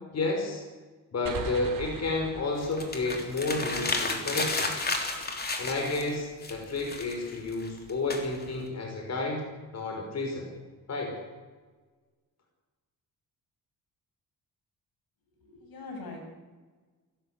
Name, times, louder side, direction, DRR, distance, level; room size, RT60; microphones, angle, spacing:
voice 1, 0.1-0.6 1.1-4.9 5.6-9.4 9.7-10.5 10.9-11.2, left 3 dB, 45° left, 1 dB, 5.4 m, -31 dB
sound 1, 1.3-4.7, right 6 dB, 70° right, 3.3 m, -41 dB
sound 2, 2.6-6.2 6.4-8.7, left 3 dB, 25° left, 3.4 m, -32 dB
voice 2, 15.4-16.2, left 3 dB, 80° left, 2 dB, 7.4 m, -42 dB
28.0 x 14.0 x 8.2 m, 1.4 s
wide cardioid pair, 140°, 35 cm